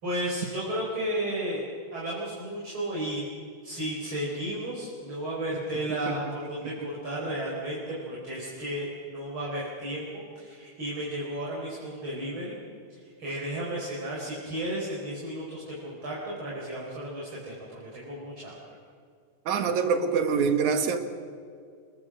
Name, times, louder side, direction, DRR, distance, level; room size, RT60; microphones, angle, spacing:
voice 1, 0.0-3.2 3.6-12.6 12.9-18.6, right 1 dB, 40° right, -5 dB, 5.4 m, -33 dB
voice 2, 19.5-21.0, right 5 dB, 70° right, 8 dB, 2.8 m, -25 dB
28.0 x 21.0 x 6.3 m, 2.2 s
omnidirectional pair, 3.7 m